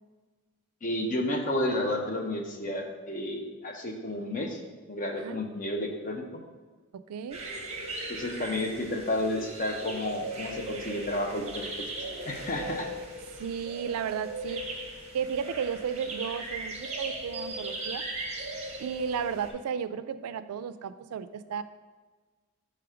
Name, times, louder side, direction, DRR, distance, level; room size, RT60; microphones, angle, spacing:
voice 1, 0.8-4.6 4.9-6.2 8.1-11.9 12.3-12.9, left 1 dB, 35° left, 2 dB, 0.7 m, -31 dB
voice 2, 7.1-7.4 13.4-14.6 15.1-18.0 18.8-21.6, right 7 dB, 85° right, 13 dB, 0.3 m, -33 dB
sound 1, 7.3-19.5, right 2 dB, 30° right, 0.8 m, -38 dB
5.9 x 3.3 x 4.9 m, 1.4 s
head